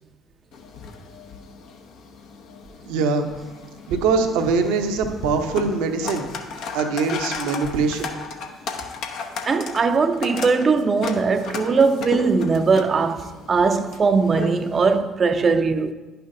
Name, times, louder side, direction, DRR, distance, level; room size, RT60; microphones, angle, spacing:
sound 1, 0.5-15.0, left 5 dB, 65° left, 0.8 m, -35 dB
voice 1, 2.9-3.3 3.9-6.3 6.7-8.1, right 4 dB, 70° right, 0.8 m, -22 dB
voice 2, 9.5-15.9, right 4 dB, 40° right, 0.5 m, -20 dB
11.0 x 5.6 x 2.7 m
hypercardioid pair, 55°, 0 cm